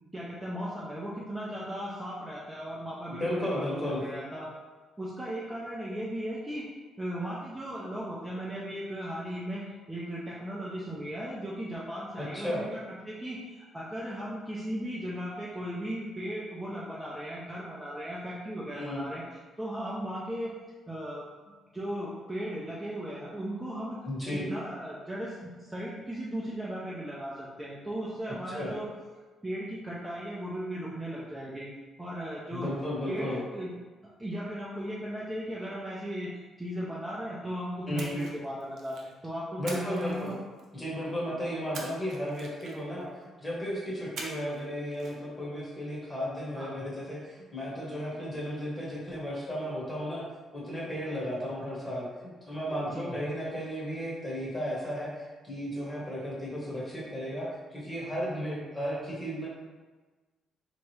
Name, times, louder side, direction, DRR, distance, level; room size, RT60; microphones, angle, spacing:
voice 1, 0.1-4.5 5.0-6.7 7.0-19.2 19.6-20.6 20.9-21.3 21.7-28.9 29.4-31.7 32.0-32.7 33.1-33.7 34.2-36.3 36.6-40.4 46.5-46.8 52.9-53.2, equal, 10° right, -7 dB, 0.5 m, -37 dB
voice 2, 3.2-4.0 12.2-12.6 18.7-19.0 24.0-24.4 28.5-28.7 32.5-33.4 37.9-38.2 39.6-40.3 40.7-50.2 50.5-59.5, equal, 15° left, -5 dB, 1.1 m, -34 dB
Splash splatter, 38.0-39.1 39.7-40.8 41.7-43.0 44.2-44.6 44.9-45.1, right 3 dB, 60° right, 0.6 m, -44 dB
3.4 x 3.0 x 3.1 m, 1.3 s
cardioid pair, 130°, 0 cm